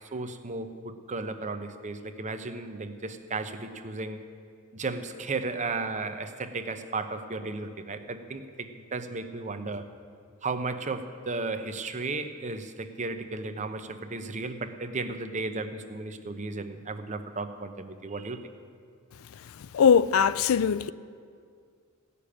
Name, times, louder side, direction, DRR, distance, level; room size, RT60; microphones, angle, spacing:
voice 1, 0.1-4.2 4.7-9.9 10.4-18.4, right 3 dB, 35° right, 0.8 m, -34 dB
voice 2, 19.7-20.9, left 7 dB, 70° left, 0.4 m, -21 dB
16.0 x 6.8 x 9.9 m
head